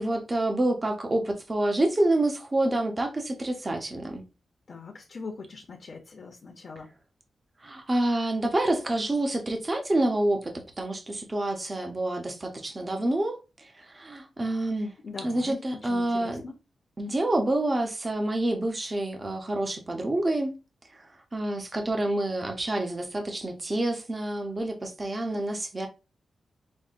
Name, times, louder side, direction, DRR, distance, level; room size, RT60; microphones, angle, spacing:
voice 1, 0.0-4.2 7.6-14.9 15.2-16.4 17.0-20.6 21.3-25.9, right 1 dB, 25° right, 0.6 m, -28 dB
voice 2, 4.7-6.9 15.0-16.6, left 4 dB, 45° left, 0.6 m, -41 dB
5.2 x 2.1 x 2.5 m
wide cardioid pair, 145°, 0 cm